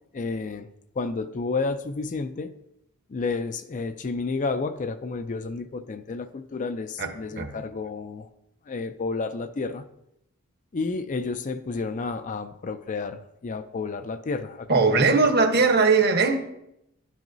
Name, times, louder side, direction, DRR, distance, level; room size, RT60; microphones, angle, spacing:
voice 1, 0.1-2.5 3.1-8.3 8.7-9.9 10.7-14.7 15.0-15.2, left 4 dB, 35° left, 10 dB, 0.4 m, -31 dB
voice 2, 14.7-16.4, right 4 dB, 50° right, 5 dB, 1.1 m, -19 dB
11.0 x 9.1 x 2.6 m, 0.83 s
head